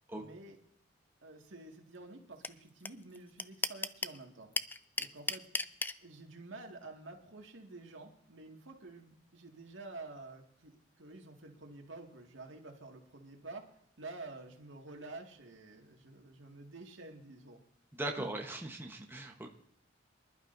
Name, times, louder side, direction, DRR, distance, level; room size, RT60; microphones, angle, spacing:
voice 1, 0.1-0.6 1.2-4.5 5.0-5.4 6.0-13.6 14.0-17.6 18.2-18.3, right 2 dB, 80° right, 2 dB, 2.0 m, -49 dB
sound 1, 2.4-2.5 2.9-3.0 3.1-4.2 4.6-5.9, left 3 dB, 10° left, 0.4 m, -33 dB
voice 2, 17.9-19.5, right 1 dB, 10° right, 1 dB, 1.1 m, -39 dB
24.0 x 11.5 x 2.7 m, 0.72 s
head